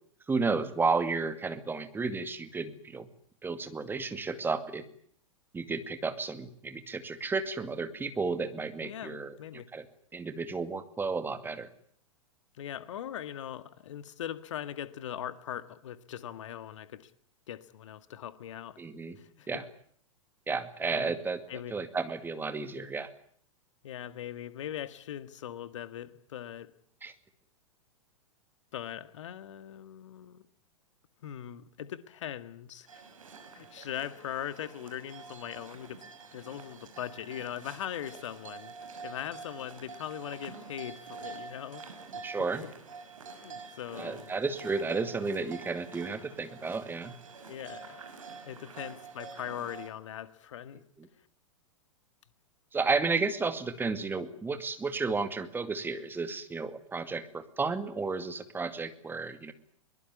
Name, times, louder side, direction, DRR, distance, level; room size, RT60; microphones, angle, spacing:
voice 1, 0.3-3.1 3.4-4.8 5.5-9.3 9.7-9.9 10.1-11.7 18.8-19.2 19.5-19.6 20.5-21.4 21.7-23.1 27.0-27.1 42.2-42.6 43.9-47.1 51.0-51.1 52.7-59.5, right 4 dB, 10° right, 2.3 m, -32 dB
voice 2, 8.8-9.7 12.6-17.1 17.5-18.8 19.2-19.6 20.9-21.2 21.5-21.7 23.8-26.7 28.7-30.4 31.2-33.0 33.5-36.1 36.3-38.7 39.0-42.3 42.6-42.7 43.2-44.3 47.5-48.0 48.4-50.8, left 10 dB, 60° left, 1.9 m, -40 dB
sound 1, 32.9-49.9, right 5 dB, 70° right, 6.3 m, -47 dB
23.0 x 21.5 x 9.8 m
figure-of-eight pair, 100°, 18 cm